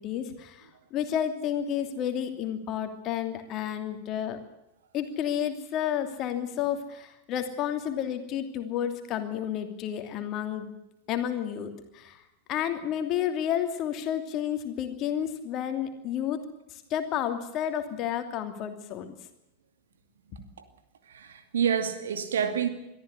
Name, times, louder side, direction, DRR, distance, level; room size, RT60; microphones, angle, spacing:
voice 1, 0.0-4.4 4.9-10.7 11.1-12.2 12.5-16.4 16.7-19.1 20.3-20.4, left 10 dB, 35° left, 6 dB, 2.8 m, -31 dB
voice 2, 21.1-22.7, right 8 dB, 65° right, 8 dB, 2.5 m, -28 dB
23.0 x 14.0 x 9.9 m, 0.88 s
figure-of-eight pair, 90°, 0 cm